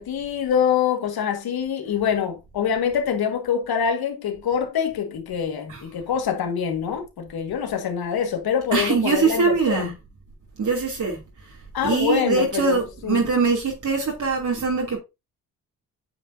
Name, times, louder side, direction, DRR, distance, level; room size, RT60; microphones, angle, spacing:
voice 1, 0.0-9.9 11.7-13.2, left 7 dB, 85° left, 1.9 m, -25 dB
voice 2, 8.7-9.9 10.6-11.2 11.8-15.0, right 4 dB, 55° right, 2.9 m, -22 dB
8.9 x 5.9 x 2.7 m
cardioid pair, 85°, 36 cm